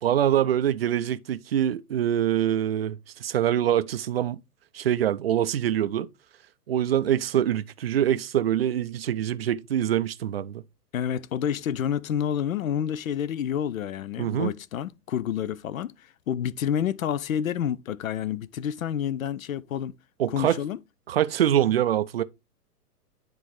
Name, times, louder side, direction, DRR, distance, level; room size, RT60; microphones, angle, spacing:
voice 1, 0.0-4.4 4.7-6.1 6.7-10.6 14.2-14.5 20.2-20.6 21.1-22.2, right 10 dB, 40° right, 0.4 m, -24 dB
voice 2, 10.9-15.9 16.3-20.0 20.3-20.8, left 9 dB, 60° left, 0.6 m, -29 dB
9.9 x 3.8 x 3.1 m
figure-of-eight pair, 115°, 47 cm